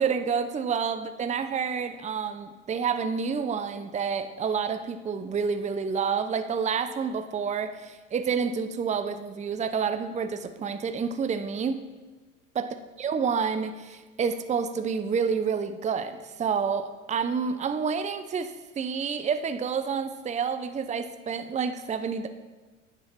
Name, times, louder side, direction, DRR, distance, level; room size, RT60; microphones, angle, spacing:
voice 1, 0.0-11.8 12.5-12.6 13.0-22.3, right 6 dB, 20° right, 8 dB, 0.7 m, -29 dB
9.0 x 7.6 x 5.9 m, 1.3 s
hypercardioid pair, 90°, 37 cm